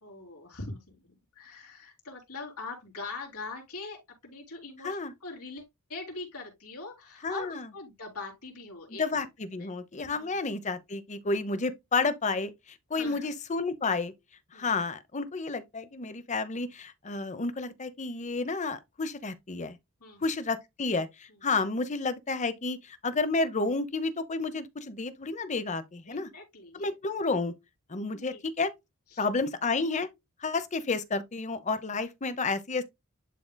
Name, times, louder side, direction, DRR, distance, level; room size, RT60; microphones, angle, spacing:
voice 1, 0.0-9.3 9.6-9.7 10.1-10.4 12.9-13.3 14.5-14.7 20.0-20.3 26.1-27.0 28.0-28.4 29.1-29.3, left 3 dB, 85° left, 3.4 m, -43 dB
voice 2, 7.2-7.6 9.0-14.1 14.5-19.8 20.2-26.3 26.8-27.5 27.9-28.7 29.2-30.1 30.4-32.8, left 3 dB, 30° left, 0.8 m, -31 dB
11.0 x 3.8 x 2.2 m
head